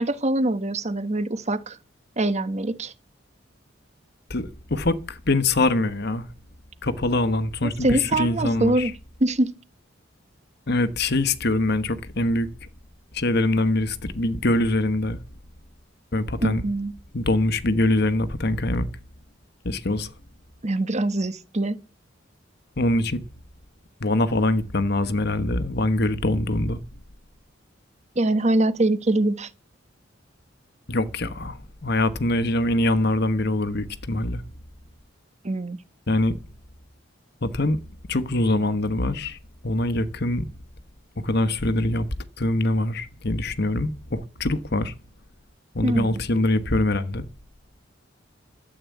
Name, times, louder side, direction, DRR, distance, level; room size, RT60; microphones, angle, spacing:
voice 1, 0.0-1.8 2.2-2.9 7.6-8.9 9.2-9.5 16.4-16.9 20.6-21.8 28.1-29.5 35.4-35.8 45.8-46.2, right 1 dB, 35° right, 1.2 m, -23 dB
voice 2, 4.3-6.3 6.8-8.9 10.7-12.5 13.1-15.2 16.1-16.6 17.1-18.9 19.6-20.1 22.8-23.2 24.0-26.8 30.9-34.4 36.1-36.4 37.4-37.8 38.1-39.4 39.6-40.5 41.2-42.1 42.4-44.9 45.7-47.2, left 2 dB, 60° left, 1.3 m, -23 dB
13.0 x 8.6 x 8.5 m
head